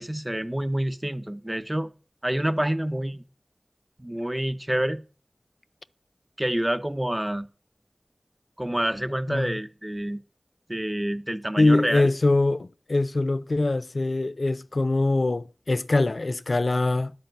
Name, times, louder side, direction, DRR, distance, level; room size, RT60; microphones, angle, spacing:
voice 1, 0.0-1.9 2.2-3.2 4.0-5.0 6.4-7.5 8.6-10.2 10.7-12.1, right 1 dB, 15° right, 0.8 m, -27 dB
voice 2, 9.3-9.6 11.6-17.1, left 2 dB, 70° left, 0.4 m, -23 dB
10.0 x 5.1 x 7.9 m
wide cardioid pair, 45°, 0 cm